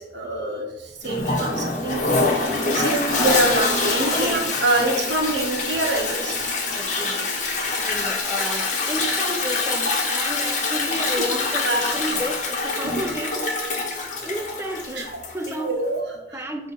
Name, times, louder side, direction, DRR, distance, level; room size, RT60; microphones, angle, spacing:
voice 1, 0.0-2.0 2.3-6.4 11.2-11.3 11.6-12.0 15.0-15.1 15.5-16.0, right 2 dB, 75° right, 0 dB, 1.3 m, -25 dB
Toilet flush, 1.0-15.7, left 3 dB, 45° left, 1.0 m, -25 dB
voice 2, 2.4-3.1 4.1-4.5 6.7-7.3 7.8-13.6 14.0-15.8 16.2-16.7, equal, 15° right, 5 dB, 0.6 m, -32 dB
6.4 x 3.1 x 5.3 m, 0.96 s
head